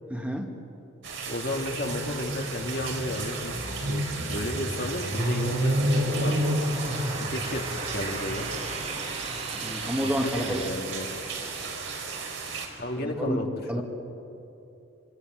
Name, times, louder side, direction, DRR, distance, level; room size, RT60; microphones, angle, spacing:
voice 1, 0.1-0.5 9.6-10.6 13.0-13.4 13.7-13.8, equal, 5° right, 2 dB, 2.2 m, -29 dB
sound 1, 1.0-12.7, right 1 dB, 65° right, 4.8 m, -30 dB
voice 2, 1.2-4.0 4.3-6.6 7.2-7.7 7.9-8.5 10.0-11.2 12.8-13.5 13.7-13.8, left 1 dB, 55° left, 2 dB, 2.4 m, -33 dB
sound 2, 5.7-10.7, right 3 dB, 30° right, 2.0 m, -39 dB
27.5 x 26.0 x 8.0 m, 2.9 s
head